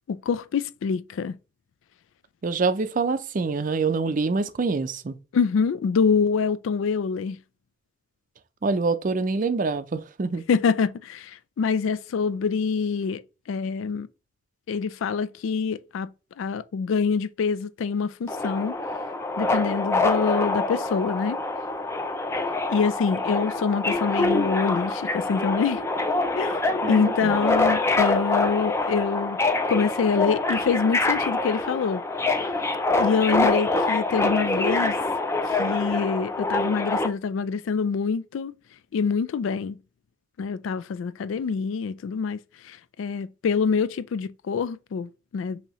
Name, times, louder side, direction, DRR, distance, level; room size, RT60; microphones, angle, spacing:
voice 1, 0.1-1.4 5.3-7.4 10.5-13.2 13.5-14.1 14.7-16.1 16.4-18.7 19.4-21.4 22.7-25.8 26.4-26.6 26.9-29.4 29.7-32.0 33.0-35.0 35.6-38.5 38.9-39.8 40.4-42.4 42.6-45.6, left 5 dB, 80° left, 0.3 m, -25 dB
voice 2, 2.4-5.2 8.6-10.4 26.8-27.4, right 4 dB, 45° right, 0.4 m, -25 dB
Subway metro underground, 18.3-37.1, left 2 dB, 15° left, 0.4 m, -25 dB
6.2 x 2.8 x 3.0 m
head